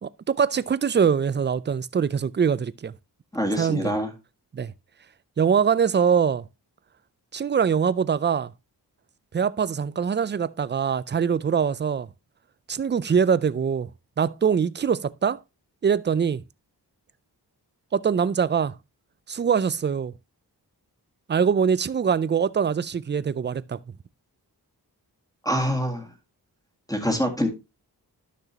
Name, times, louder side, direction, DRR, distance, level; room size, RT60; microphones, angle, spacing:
voice 1, 0.0-2.9 3.6-3.9 4.5-4.7 5.4-6.4 7.3-8.5 9.3-12.1 12.7-13.9 14.2-15.4 15.8-16.4 17.9-18.7 19.3-20.1 21.3-23.8, right 7 dB, 30° right, 0.4 m, -23 dB
voice 2, 3.3-4.1 25.4-26.1 26.9-27.5, equal, 10° left, 2.0 m, -25 dB
12.0 x 6.1 x 2.8 m
wide cardioid pair, 115°, 40 cm